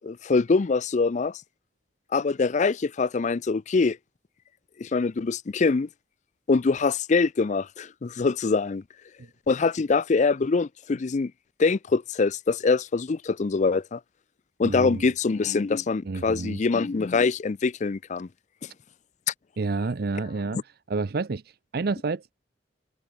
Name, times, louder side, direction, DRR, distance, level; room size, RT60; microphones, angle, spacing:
voice 1, 0.0-1.4 2.1-4.0 4.8-5.9 6.5-8.8 9.5-11.3 11.6-14.0 14.6-18.3 18.6-18.7, left 4 dB, 40° left, 0.4 m, -24 dB
voice 2, 14.6-15.1 16.0-16.6 19.6-22.3, right 3 dB, 55° right, 0.6 m, -29 dB
head